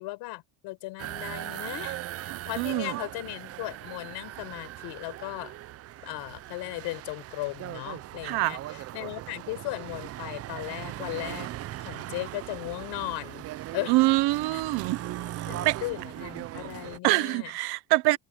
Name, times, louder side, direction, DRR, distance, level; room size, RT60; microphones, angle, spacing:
voice 1, 0.0-5.5 6.0-11.5 11.8-13.4 13.7-13.9 14.5-14.6 15.5-17.5, left 20 dB, 75° left, 4.8 m, -37 dB
sound 1, 1.0-17.0, right 14 dB, 35° right, 0.5 m, -39 dB
voice 2, 2.3-3.0 8.2-8.6 13.9-15.0 15.6-15.8 17.0-18.2, right 20 dB, 70° right, 0.9 m, -25 dB
cardioid pair, 165°, 40 cm